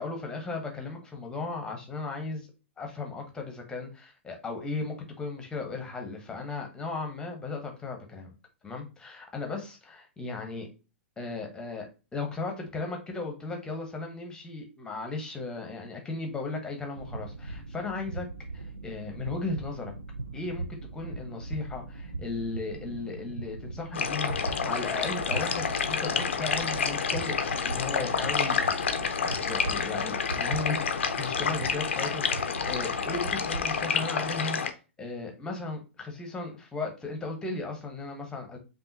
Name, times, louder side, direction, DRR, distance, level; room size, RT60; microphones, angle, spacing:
voice 1, 0.0-2.5 2.8-8.3 8.6-10.7 11.2-11.9 12.1-18.3 18.5-19.9 20.3-34.6 35.0-38.6, left 3 dB, 10° left, 2 dB, 1.0 m, -36 dB
sound 1, 16.9-33.8, right 3 dB, 85° right, 0.5 m, -39 dB
sound 2, 23.9-34.7, left 6 dB, 65° left, 0.6 m, -29 dB
5.4 x 2.6 x 2.7 m, 0.31 s
figure-of-eight pair, 110°, 7 cm